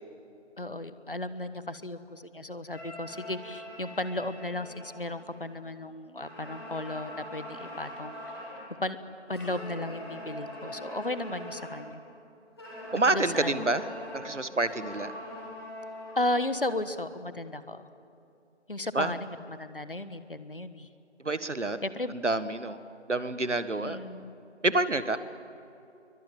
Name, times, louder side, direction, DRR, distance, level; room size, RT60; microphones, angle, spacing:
voice 1, 0.6-8.2 8.8-9.0 9.3-12.0 12.9-13.9 16.1-17.9 18.7-20.9 21.8-22.2 23.8-24.3, left 1 dB, 50° left, 13 dB, 1.4 m, -35 dB
sound 1, 2.7-5.7 6.1-8.7 9.3-11.9 12.6-16.8, left 1 dB, 20° left, 6.1 m, -43 dB
voice 2, 12.9-13.8 14.1-15.1 18.9-19.1 21.2-21.8 22.2-22.8 23.1-24.0 24.6-25.2, right 2 dB, 85° right, 12 dB, 1.8 m, -27 dB
28.0 x 23.5 x 9.0 m, 2.8 s
figure-of-eight pair, 175°, 35 cm